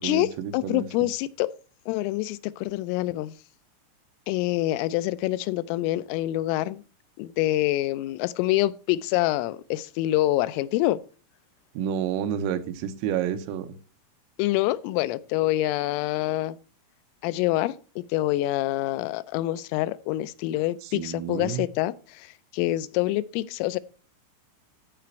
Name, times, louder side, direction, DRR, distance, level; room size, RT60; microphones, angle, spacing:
voice 1, 0.0-0.9 11.8-13.8 20.8-21.7, right 9 dB, 85° right, 3.6 m, -30 dB
voice 2, 0.5-1.5 1.9-3.4 4.3-6.8 7.2-11.0 14.4-16.6 17.2-23.8, left 16 dB, 85° left, 3.2 m, -26 dB
14.0 x 5.0 x 4.4 m
omnidirectional pair, 5.8 m